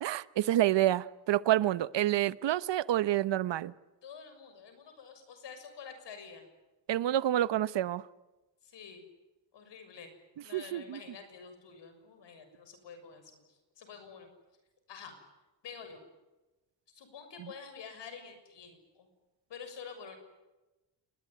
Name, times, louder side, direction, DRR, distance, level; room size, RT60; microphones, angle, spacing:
voice 1, 0.0-3.7 6.9-8.0 10.5-11.0 17.4-17.5, right 13 dB, 80° right, 17 dB, 0.9 m, -28 dB
voice 2, 4.0-6.4 8.6-9.0 9.5-10.1 10.4-14.3 14.9-15.2 15.6-16.0 16.9-19.1 19.5-20.2, left 6 dB, 75° left, 8 dB, 6.7 m, -48 dB
29.0 x 20.5 x 9.3 m, 1.1 s
cardioid pair, 110°, 43 cm